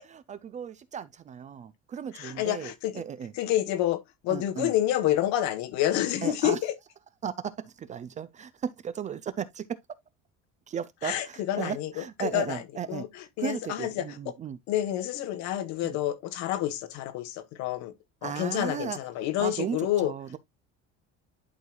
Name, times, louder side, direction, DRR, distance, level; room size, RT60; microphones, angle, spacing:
voice 1, 0.0-3.3 4.3-4.7 6.2-6.6 7.2-9.7 10.7-13.1 13.4-14.6 15.8-16.0 18.2-19.0 19.4-20.4, right 8 dB, 25° right, 0.4 m, -35 dB
voice 2, 2.1-3.0 3.4-6.7 11.0-12.6 12.9-13.1 13.4-14.3 14.7-17.9 18.2-20.1, left 13 dB, 70° left, 1.2 m, -28 dB
11.0 x 4.6 x 2.3 m
cardioid pair, 160°, 29 cm